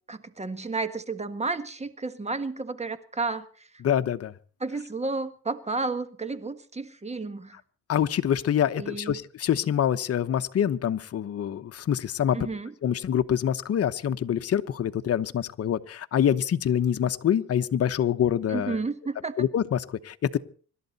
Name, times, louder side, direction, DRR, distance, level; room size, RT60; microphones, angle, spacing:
voice 1, 0.1-3.7 4.6-7.6 8.8-9.2 12.3-12.7 18.5-19.3, right 3 dB, 20° right, 12 dB, 1.5 m, -32 dB
voice 2, 3.8-4.3 7.9-12.4 12.8-18.8 19.4-20.4, left 9 dB, 50° left, 9 dB, 1.0 m, -25 dB
25.5 x 12.0 x 4.2 m, 0.43 s
cardioid pair, 90°, 30 cm